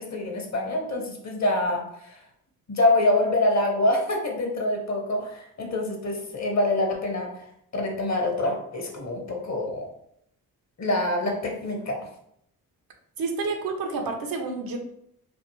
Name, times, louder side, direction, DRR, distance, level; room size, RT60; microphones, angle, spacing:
voice 1, 0.0-2.2 2.7-7.3 7.7-9.9 10.8-12.0, left 2 dB, 45° left, 1 dB, 1.2 m, -25 dB
voice 2, 13.2-14.8, right 4 dB, 65° right, 3 dB, 0.8 m, -29 dB
3.3 x 2.5 x 3.0 m, 0.73 s
supercardioid pair, 50°, 38 cm